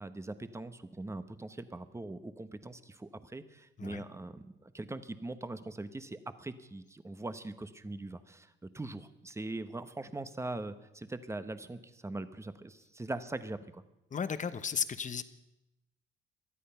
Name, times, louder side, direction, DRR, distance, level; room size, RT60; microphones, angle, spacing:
voice 1, 0.0-13.8, right 2 dB, 15° right, 11 dB, 1.1 m, -41 dB
voice 2, 14.1-15.2, left 6 dB, 40° left, 13 dB, 1.0 m, -34 dB
19.5 x 13.0 x 5.7 m, 0.89 s
cardioid pair, 90°, 20 cm